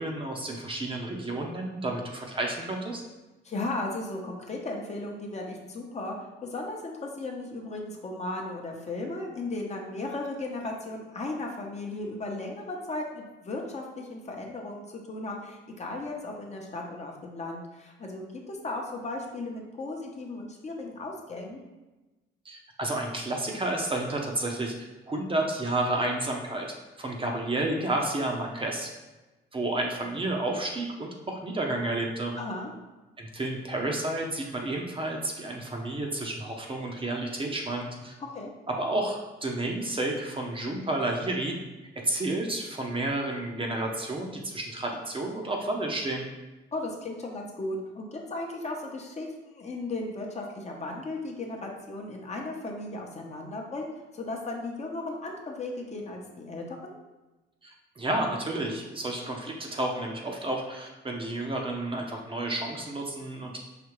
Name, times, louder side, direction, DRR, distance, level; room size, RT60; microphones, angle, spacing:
voice 1, 0.0-3.0 22.4-24.7 25.1-26.7 27.0-28.9 29.5-32.3 33.2-38.1 38.8-41.5 42.0-46.2 57.6-63.6, right 2 dB, 25° right, 1 dB, 0.7 m, -31 dB
voice 2, 3.4-6.2 6.4-21.6 32.4-32.7 38.3-38.5 46.7-53.9 54.1-56.9, left 2 dB, 35° left, 0 dB, 0.7 m, -36 dB
5.0 x 2.7 x 3.1 m, 1.1 s
cardioid pair, 90°, 20 cm